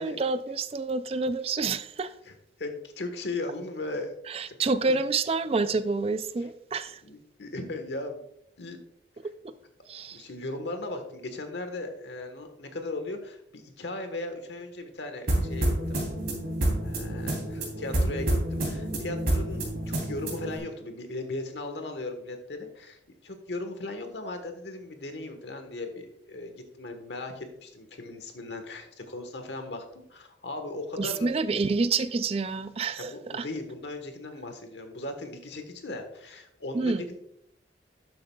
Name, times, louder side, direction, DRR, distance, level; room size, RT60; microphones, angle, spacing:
voice 1, 0.0-2.1 4.3-7.0 9.2-9.5 9.9-10.2 31.0-33.5 36.7-37.1, right 4 dB, 35° right, 0.4 m, -28 dB
voice 2, 2.2-4.2 7.0-8.2 8.6-8.8 10.1-16.0 16.8-31.3 33.0-37.2, left 2 dB, 75° left, 1.3 m, -37 dB
sound 1, 15.3-20.6, right 1 dB, 60° right, 3.1 m, -28 dB
11.5 x 7.7 x 2.3 m
head